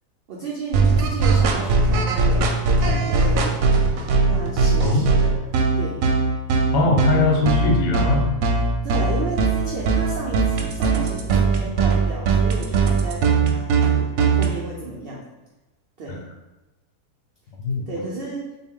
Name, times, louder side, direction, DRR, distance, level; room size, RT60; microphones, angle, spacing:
voice 1, 0.3-3.7 4.2-5.3 5.8-6.1 6.8-7.0 8.8-15.2 16.0-16.2 17.9-18.4, right 3 dB, 85° right, -4 dB, 0.5 m, -32 dB
sound 1, 0.7-14.5, right 4 dB, 70° right, 0.9 m, -19 dB
voice 2, 6.7-8.3 16.1-16.2 17.6-17.9, left 3 dB, 85° left, 1 dB, 1.3 m, -20 dB
3.9 x 2.2 x 3.5 m, 1.0 s
omnidirectional pair, 1.7 m